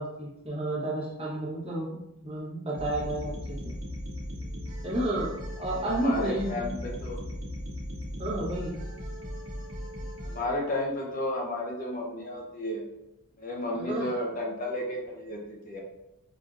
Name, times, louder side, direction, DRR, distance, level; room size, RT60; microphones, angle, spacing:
voice 1, 0.0-2.0 2.2-3.7 4.8-5.3 5.6-6.5 8.2-8.7 13.7-14.1, right 1 dB, 25° right, -6 dB, 1.0 m, -31 dB
sound 1, 2.7-10.4, equal, 65° right, 1.0 m, -37 dB
voice 2, 5.7-7.2 10.2-12.8 13.4-15.8, left 1 dB, 35° left, -1 dB, 0.5 m, -32 dB
5.0 x 2.7 x 2.4 m, 0.90 s
head